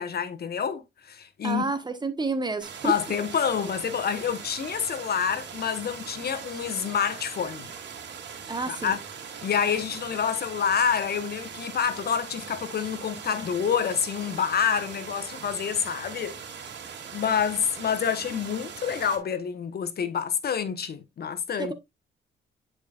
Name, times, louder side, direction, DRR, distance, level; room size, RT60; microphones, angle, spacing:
voice 1, 0.0-1.6 2.8-7.7 8.7-9.0 9.4-16.4 17.1-21.7, left 7 dB, 50° left, 1.2 m, -27 dB
voice 2, 1.4-2.9 8.5-9.0 21.6-21.7, right 3 dB, 20° right, 1.4 m, -29 dB
sound 1, 2.6-19.2, right 6 dB, 65° right, 2.9 m, -41 dB
10.5 x 5.1 x 2.5 m
cardioid pair, 90°, 20 cm